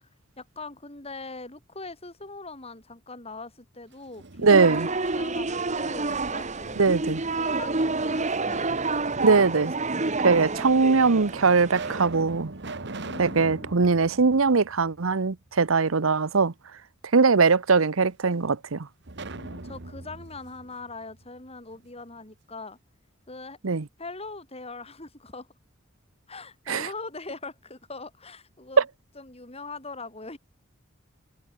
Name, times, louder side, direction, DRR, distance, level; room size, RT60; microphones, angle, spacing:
voice 1, 0.4-5.5 5.7-6.8 7.4-8.9 13.0-13.9 19.3-22.8 23.3-23.6 24.0-25.5 26.3-28.8 29.2-30.4, left 3 dB, 30° left, 5.2 m, -41 dB
sound 1, 3.9-4.9 5.3-6.6 7.9-8.7 9.5-9.6 10.5-10.6 11.2-15.3 15.6-15.7 19.1-21.9, right 3 dB, 60° right, 1.6 m, -41 dB
voice 2, 4.4-4.9 6.8-7.2 9.2-9.7 10.2-12.5 13.2-16.5 17.1-18.9 23.6-23.8 26.7-26.9, right 4 dB, 85° right, 0.9 m, -21 dB
sound 2, 4.5-12.0, right 3 dB, 35° right, 1.7 m, -29 dB
head